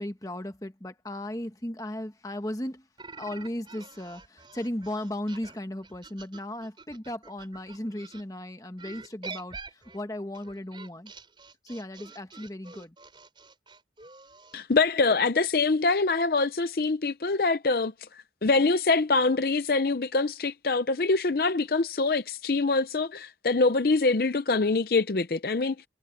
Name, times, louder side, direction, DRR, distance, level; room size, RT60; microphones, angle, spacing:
voice 1, 0.0-2.9 3.2-11.1 11.6-12.9, left 1 dB, 20° left, 1.4 m, -36 dB
sound 1, 3.0-8.2 8.8-14.6, right 4 dB, 25° right, 5.6 m, -46 dB
voice 2, 14.5-17.9 18.4-25.8, left 3 dB, 55° left, 0.6 m, -24 dB
head